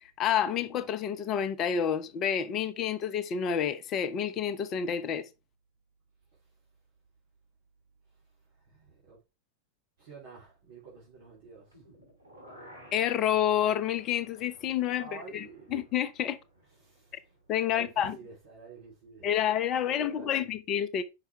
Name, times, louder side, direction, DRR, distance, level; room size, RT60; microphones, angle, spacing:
voice 1, 0.2-5.3 12.9-15.5 15.7-16.4 17.5-18.2 19.2-21.0, left 9 dB, 35° left, 0.7 m, -29 dB
voice 2, 8.5-9.2 10.0-11.8 15.0-15.8 16.8-17.2 17.6-19.5 19.8-20.5, right 4 dB, 55° right, 3.1 m, -49 dB
sound 1, 11.7-17.7 18.0-18.1, equal, 80° right, 3.0 m, -55 dB
5.8 x 5.7 x 3.3 m
figure-of-eight pair, 90°, 0 cm